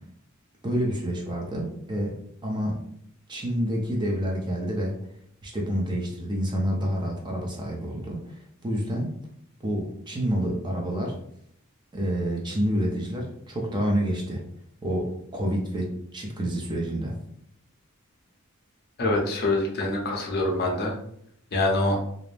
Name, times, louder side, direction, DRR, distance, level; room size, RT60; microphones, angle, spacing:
voice 1, 0.6-2.9 3.3-5.0 5.4-9.2 9.6-11.2 11.9-14.4 14.8-17.2, equal, 20° right, -1 dB, 0.5 m, -28 dB
voice 2, 19.0-21.0 21.5-22.0, left 2 dB, 45° left, 0 dB, 0.6 m, -25 dB
2.5 x 2.0 x 3.2 m, 0.69 s
head